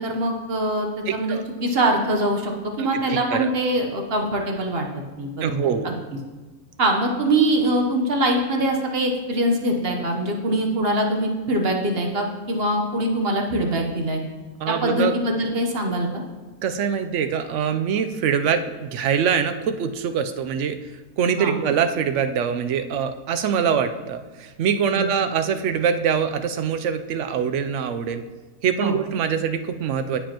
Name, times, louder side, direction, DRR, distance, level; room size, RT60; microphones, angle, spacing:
voice 1, 0.0-4.9 5.2-5.9 6.8-14.2 14.7-16.2 21.4-21.5 24.9-25.1 28.8-28.9, right 1 dB, 45° right, 2 dB, 1.1 m, -23 dB
voice 2, 1.1-1.4 2.8-3.5 5.4-5.9 14.6-15.1 16.6-20.8 21.2-28.2 28.6-30.2, right 7 dB, 65° right, 9 dB, 0.8 m, -24 dB
15.0 x 5.2 x 2.9 m, 1.3 s
omnidirectional pair, 1.6 m